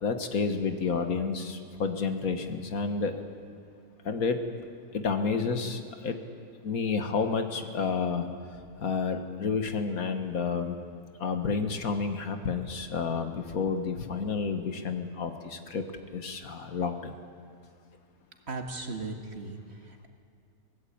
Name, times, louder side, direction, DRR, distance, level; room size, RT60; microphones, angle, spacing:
voice 1, 0.0-3.1 4.1-4.4 4.9-6.2 6.6-8.3 8.8-10.8 11.2-15.8 16.1-17.1, left 5 dB, 65° left, 7 dB, 1.8 m, -30 dB
voice 2, 18.5-20.1, right 3 dB, 45° right, 4 dB, 2.0 m, -37 dB
24.0 x 18.0 x 8.6 m, 2.3 s
omnidirectional pair, 1.6 m